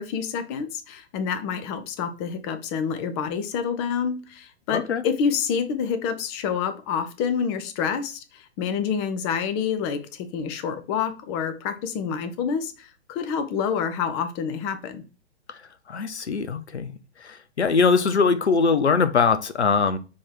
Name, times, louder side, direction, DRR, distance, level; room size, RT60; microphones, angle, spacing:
voice 1, 0.0-15.0, left 7 dB, 25° left, 0.7 m, -28 dB
voice 2, 4.7-5.0 15.9-16.9 17.2-20.0, left 5 dB, 75° left, 0.8 m, -22 dB
7.2 x 3.0 x 4.4 m
figure-of-eight pair, 115°, 34 cm